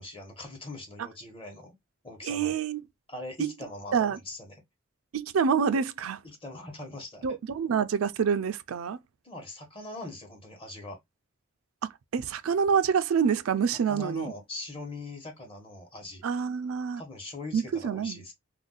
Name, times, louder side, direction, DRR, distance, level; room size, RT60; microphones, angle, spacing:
voice 1, 0.0-1.8 2.0-2.6 3.1-4.5 6.2-7.4 9.2-11.0 13.9-16.2 17.0-18.3, left 2 dB, 25° left, 1.0 m, -41 dB
voice 2, 2.2-2.8 3.4-3.5 3.9-4.2 5.1-6.2 7.2-9.0 11.8-14.3 16.2-17.0 17.5-18.3, right 6 dB, 80° right, 0.4 m, -27 dB
2.5 x 2.2 x 3.7 m
head